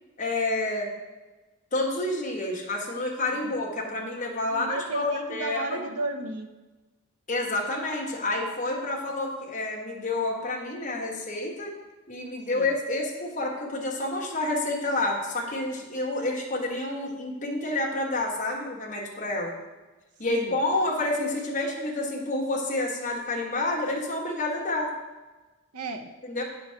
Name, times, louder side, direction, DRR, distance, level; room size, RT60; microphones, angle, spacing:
voice 1, 0.2-0.9 1.7-5.8 7.3-11.7 12.1-19.5 20.2-24.9 26.2-26.4, left 2 dB, 35° left, -2 dB, 1.3 m, -29 dB
voice 2, 4.5-6.5 12.5-12.7 20.3-20.6 25.7-26.1, right 2 dB, 90° right, 5 dB, 0.8 m, -34 dB
8.3 x 3.9 x 5.7 m, 1.2 s
head